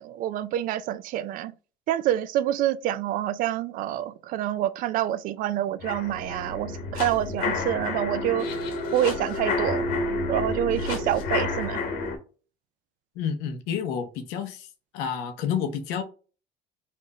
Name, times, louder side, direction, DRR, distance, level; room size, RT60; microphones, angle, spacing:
voice 1, 0.0-1.5 1.9-8.5 8.9-9.9 10.3-11.8, right 12 dB, 60° right, 0.4 m, -27 dB
sound 1, 5.8-12.2, left 3 dB, 75° left, 1.2 m, -29 dB
voice 2, 13.1-14.7 14.9-16.0, left 7 dB, 90° left, 0.8 m, -29 dB
4.4 x 2.5 x 2.9 m
cardioid pair, 120°, 16 cm